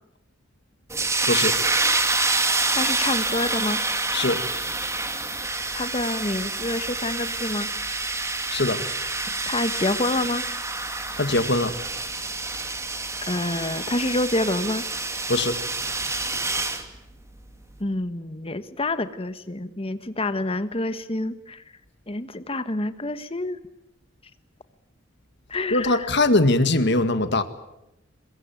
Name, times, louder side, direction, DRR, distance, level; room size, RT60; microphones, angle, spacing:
sound 1, 0.9-16.8, right 3 dB, 15° right, 2.1 m, -27 dB
voice 1, 2.7-3.8 5.7-7.7 9.5-10.5 13.3-14.8 17.8-21.6 22.1-23.6 25.5-26.2, left 2 dB, 30° left, 12 dB, 1.4 m, -27 dB
voice 2, 8.5-8.8 11.2-11.7 15.3-15.6 25.7-27.4, left 2 dB, 60° left, 10 dB, 2.0 m, -21 dB
22.5 x 22.0 x 9.2 m, 0.88 s
head